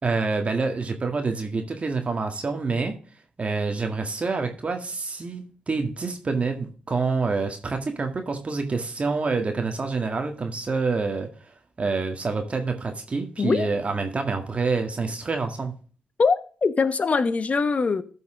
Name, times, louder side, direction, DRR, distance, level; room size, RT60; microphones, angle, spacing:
voice 1, 0.0-3.0 3.4-15.7, right 4 dB, 40° right, 1.8 m, -27 dB
voice 2, 13.4-13.7 16.2-18.0, left 4 dB, 45° left, 1.1 m, -22 dB
13.5 x 5.5 x 3.8 m
supercardioid pair, 45°, 3 cm